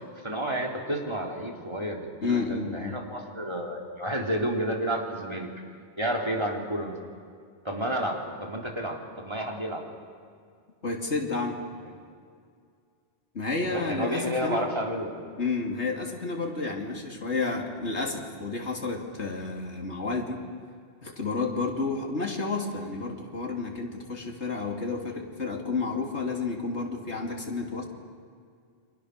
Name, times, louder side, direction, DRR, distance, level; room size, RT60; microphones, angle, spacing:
voice 1, 0.2-5.5 6.0-6.9 7.6-9.8 11.8-11.9 13.6-15.1, right 1 dB, 25° right, 0 dB, 3.5 m, -31 dB
voice 2, 2.2-3.0 10.8-11.6 13.3-14.6 15.4-20.5 21.0-27.8, left 3 dB, 70° left, 1 dB, 3.3 m, -31 dB
29.5 x 24.5 x 6.7 m, 2.2 s
omnidirectional pair, 1.2 m